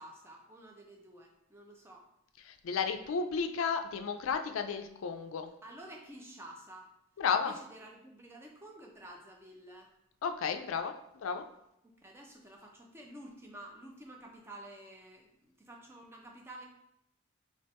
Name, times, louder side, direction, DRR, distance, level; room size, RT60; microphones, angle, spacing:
voice 1, 0.0-2.1 5.6-6.9 7.4-9.9 11.8-16.6, right 1 dB, 10° right, 0 dB, 0.5 m, -51 dB
voice 2, 2.5-5.5 7.2-7.5 10.2-11.5, left 6 dB, 80° left, 7 dB, 0.4 m, -33 dB
3.4 x 2.9 x 4.2 m, 0.80 s
head